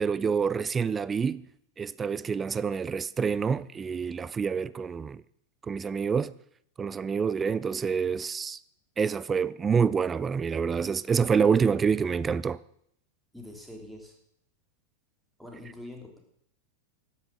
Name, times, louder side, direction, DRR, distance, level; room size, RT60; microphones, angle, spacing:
voice 1, 0.0-1.4 1.8-5.2 5.7-6.3 6.8-8.6 9.0-12.6, right 6 dB, 20° right, 0.5 m, -27 dB
voice 2, 13.3-14.1 15.4-16.2, left 1 dB, ahead, 3.2 m, -44 dB
13.0 x 9.6 x 7.0 m
figure-of-eight pair, 90°, 0 cm